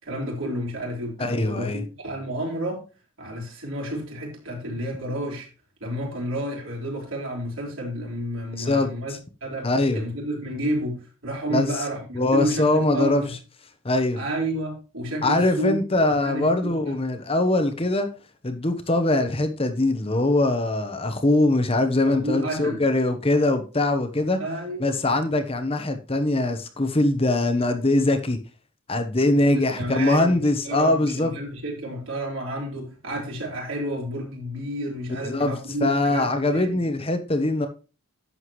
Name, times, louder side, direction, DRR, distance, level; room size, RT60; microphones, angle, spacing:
voice 1, 0.0-2.8 3.2-5.5 5.8-9.1 9.4-13.3 14.1-15.8 16.1-16.9 22.1-22.8 24.4-25.0 29.3-30.4 30.6-36.9, right 1 dB, 60° right, 4.6 m, -31 dB
voice 2, 1.2-1.8 8.6-8.9 9.6-10.0 11.5-11.7 12.1-13.2 13.8-14.2 15.2-18.1 18.4-24.4 24.8-28.4 28.9-31.3 35.2-37.7, left 2 dB, 25° left, 1.0 m, -22 dB
11.0 x 7.8 x 3.1 m
head